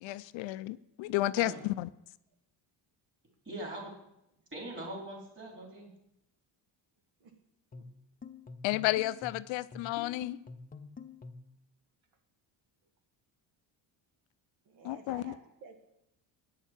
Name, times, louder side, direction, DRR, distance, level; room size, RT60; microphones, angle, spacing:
voice 1, 0.0-1.9 8.6-10.4 14.8-15.3, left 17 dB, 80° left, 0.5 m, -32 dB
voice 2, 3.4-3.9 4.5-5.9, right 1 dB, 25° right, 3.2 m, -41 dB
sound 1, 7.7-11.6, left 4 dB, 20° left, 0.5 m, -48 dB
voice 3, 14.7-15.8, right 5 dB, 80° right, 1.6 m, -53 dB
9.1 x 6.4 x 7.3 m
cardioid pair, 130°, 45 cm